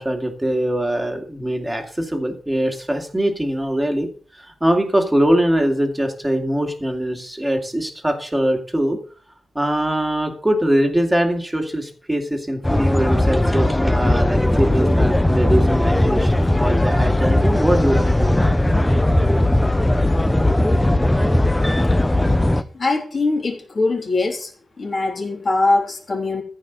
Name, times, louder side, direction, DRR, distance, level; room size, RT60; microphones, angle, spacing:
voice 1, 0.0-9.0 9.5-18.5, right 1 dB, 10° right, 4 dB, 2.4 m, -22 dB
sound 1, 12.6-22.6, left 1 dB, 10° left, 0.7 m, -18 dB
voice 2, 22.7-24.5 24.8-26.4, left 3 dB, 35° left, 1 dB, 3.5 m, -21 dB
14.5 x 5.5 x 8.2 m, 0.42 s
wide cardioid pair, 140°, 0 cm